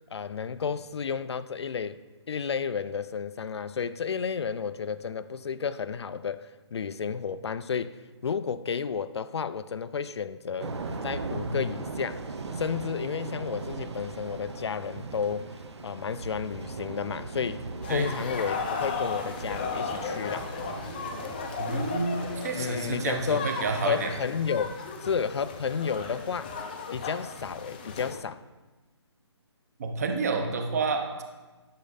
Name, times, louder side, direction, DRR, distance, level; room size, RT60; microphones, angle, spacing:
voice 1, 0.1-2.0 2.3-10.8 11.0-12.2 12.6-15.5 15.8-20.5 22.5-23.5 23.8-26.5 26.9-28.4, left 6 dB, 65° left, 0.4 m, -32 dB
Thunder / Rain, 10.6-24.4, right 3 dB, 70° right, 1.0 m, -39 dB
sound 1, 17.8-28.2, left 5 dB, 20° left, 0.5 m, -36 dB
voice 2, 21.6-24.1 29.8-31.2, right 4 dB, 35° right, 1.0 m, -29 dB
10.5 x 6.4 x 4.0 m
hypercardioid pair, 170°, 15 cm